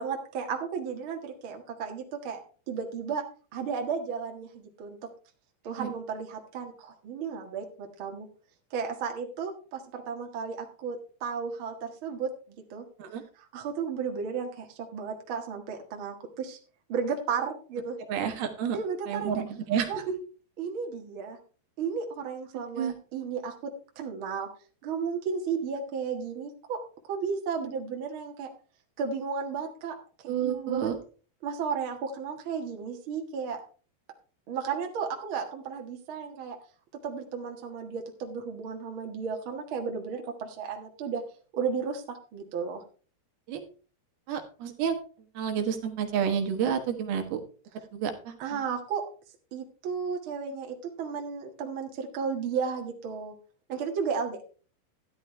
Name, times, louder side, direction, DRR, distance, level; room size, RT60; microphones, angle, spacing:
voice 1, 0.0-2.4 2.7-3.2 3.5-5.1 5.6-8.3 8.7-12.8 13.5-16.6 16.9-18.0 18.7-19.4 19.9-20.0 20.6-21.4 21.8-24.5 24.8-28.5 29.0-30.0 30.2-30.9 31.4-33.6 34.5-36.6 37.0-41.2 41.5-42.8 48.4-49.0 49.5-53.3 53.7-54.4, right 6 dB, 55° right, 2 dB, 1.5 m, -34 dB
voice 2, 18.1-18.8 19.1-20.0 22.5-22.9 30.3-31.0 43.5-43.6 44.3-45.0 45.4-47.4 47.9-48.4, right 8 dB, 70° right, 6 dB, 3.0 m, -30 dB
12.5 x 11.0 x 3.3 m, 0.38 s
omnidirectional pair, 4.9 m